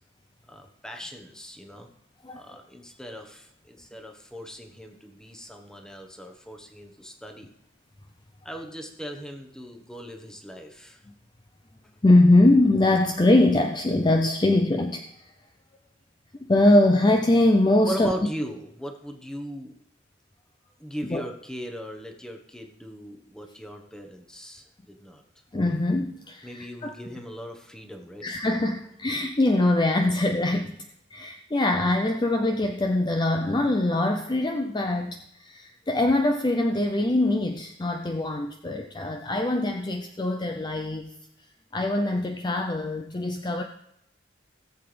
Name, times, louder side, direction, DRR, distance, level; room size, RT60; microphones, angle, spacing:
voice 1, 0.5-1.9 2.3-7.5 8.4-11.0 17.8-19.7 20.8-25.2 26.4-28.3, equal, 5° left, 4 dB, 1.1 m, -38 dB
voice 2, 2.2-2.6 11.1-11.2 12.0-15.3 16.5-18.1 21.1-21.2 25.5-26.9 28.2-30.9 31.1-41.1 41.7-43.6, left 1 dB, 25° left, 4 dB, 0.5 m, -22 dB
18.0 x 7.8 x 3.4 m, 0.77 s
head